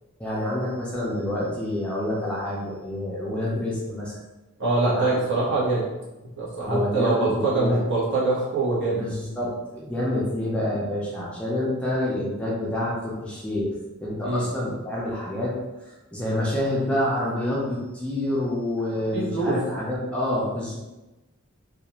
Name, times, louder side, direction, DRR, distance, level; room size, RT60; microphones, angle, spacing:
voice 1, 0.2-4.2 4.9-5.1 6.6-7.8 8.9-13.7 14.0-15.6 16.1-20.8, left 1 dB, 5° left, -6 dB, 0.4 m, -27 dB
voice 2, 4.6-5.9 6.4-9.1 14.2-14.5 19.1-19.5, right 2 dB, 55° right, -7 dB, 1.0 m, -23 dB
2.4 x 2.3 x 2.9 m, 1.1 s
head